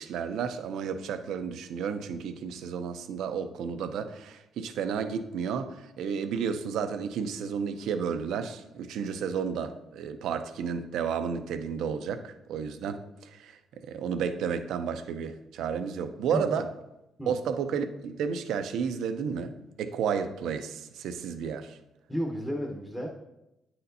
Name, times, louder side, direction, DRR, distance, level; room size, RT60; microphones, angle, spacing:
voice 1, 0.0-13.0 13.3-16.7 17.3-21.8, right 6 dB, 80° right, 0.5 m, -32 dB
voice 2, 16.2-16.6 17.2-17.3 22.1-23.1, equal, 10° left, 0.9 m, -33 dB
9.2 x 4.2 x 2.7 m
cardioid pair, 90°, 0 cm